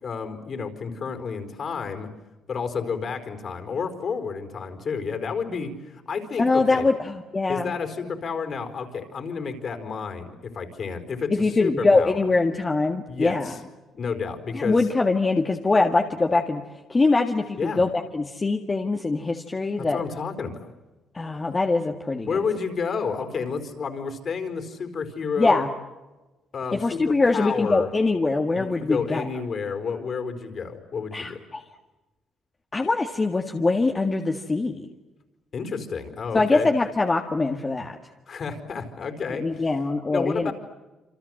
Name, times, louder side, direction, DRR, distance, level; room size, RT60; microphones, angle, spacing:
voice 1, 0.0-2.1 2.5-6.8 7.5-12.1 13.1-13.6 13.9-14.9 17.6-17.8 19.8-20.7 22.2-25.6 26.5-27.9 28.5-31.4 35.5-36.7 38.3-39.7 40.1-40.5, left 5 dB, 45° left, 8 dB, 4.6 m, -30 dB
voice 2, 6.4-7.7 11.3-13.6 14.5-16.6 16.9-20.0 21.1-22.4 25.4-25.7 26.7-29.2 31.1-31.6 32.7-34.9 36.3-38.0 39.4-40.5, left 3 dB, 20° left, 3 dB, 1.8 m, -23 dB
28.0 x 27.0 x 7.8 m, 1.1 s
cardioid pair, 125°, 0 cm